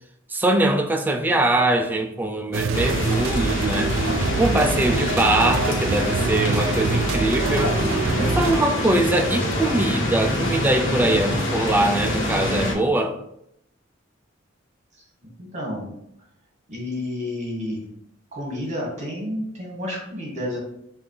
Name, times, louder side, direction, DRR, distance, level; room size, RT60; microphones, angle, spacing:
voice 1, 0.3-4.0 4.4-13.2, right 1 dB, 10° right, 5 dB, 0.4 m, -22 dB
sound 1, 2.5-8.6, right 4 dB, 85° right, 0.4 m, -25 dB
sound 2, 2.7-12.7, left 1 dB, 85° left, 1.2 m, -25 dB
voice 2, 15.4-15.9 16.7-17.9 18.3-20.6, left 1 dB, 35° right, -3 dB, 1.7 m, -30 dB
5.5 x 2.6 x 3.3 m, 0.76 s
head